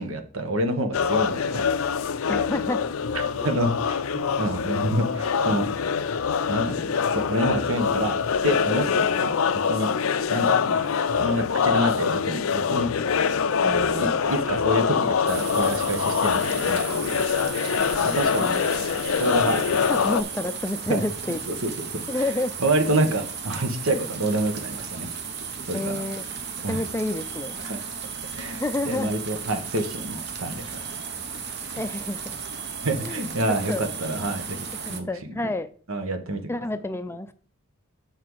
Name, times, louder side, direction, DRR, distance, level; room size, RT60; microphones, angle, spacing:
voice 1, 0.0-1.7 3.4-5.7 6.5-8.2 8.4-9.4 9.7-9.9 10.3-10.8 11.2-12.9 13.9-17.3 17.7-18.5 19.2-19.6 19.9-20.0 20.9-21.0 21.5-22.2 22.6-25.1 25.7-26.0 26.6-26.8 27.6-27.8 28.4-30.7 32.8-35.1 35.9-36.4, right 1 dB, 80° right, 7 dB, 1.3 m, -27 dB
sound 1, 0.9-20.2, left 6 dB, 85° left, 0.5 m, -24 dB
voice 2, 2.3-2.8 13.6-14.3 18.4-18.7 19.9-21.4 22.1-22.5 25.7-26.3 26.6-27.6 28.6-29.1 31.8-32.2 33.0-33.8 34.8-35.7 36.5-37.3, left 1 dB, 10° left, 11 dB, 0.4 m, -29 dB
sound 2, 15.3-35.0, right 6 dB, 55° right, 0.9 m, -35 dB
6.6 x 6.0 x 4.7 m, 0.42 s
head